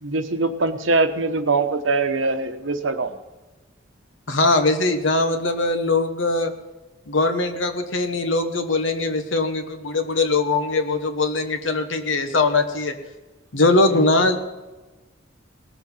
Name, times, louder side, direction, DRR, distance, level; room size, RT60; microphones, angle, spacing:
voice 1, 0.0-3.1 13.9-14.1, right 3 dB, 75° right, 7 dB, 1.1 m, -22 dB
voice 2, 4.3-6.5 7.1-12.9 13.5-14.4, left 2 dB, 75° left, 7 dB, 1.3 m, -21 dB
19.0 x 7.2 x 5.5 m, 1.1 s
head